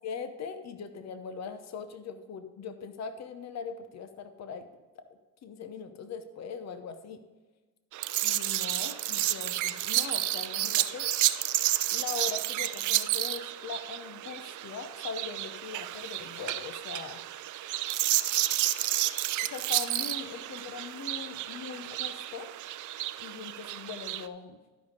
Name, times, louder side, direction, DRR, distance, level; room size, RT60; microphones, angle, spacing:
voice 1, 0.0-4.7 4.9-5.0 5.4-7.2 8.2-11.1 11.9-17.2 19.4-22.5 23.2-24.6, left 6 dB, 60° left, 9 dB, 0.9 m, -41 dB
sound 1, 7.9-24.3, right 14 dB, 75° right, 0.5 m, -31 dB
12.0 x 5.5 x 5.2 m, 1.2 s
cardioid pair, 90°, 30 cm